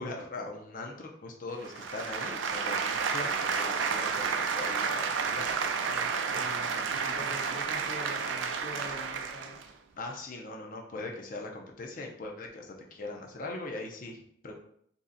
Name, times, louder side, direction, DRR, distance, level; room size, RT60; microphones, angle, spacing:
voice 1, 0.0-5.6 6.3-6.4 6.7-6.9 10.0-14.6, left 2 dB, 45° left, 1 dB, 0.6 m, -41 dB
sound 1, 1.6-9.7, right 5 dB, 85° right, 0.4 m, -31 dB
voice 2, 5.8-9.6, left 1 dB, 90° left, -3 dB, 1.2 m, -45 dB
3.2 x 2.8 x 3.8 m, 0.67 s
head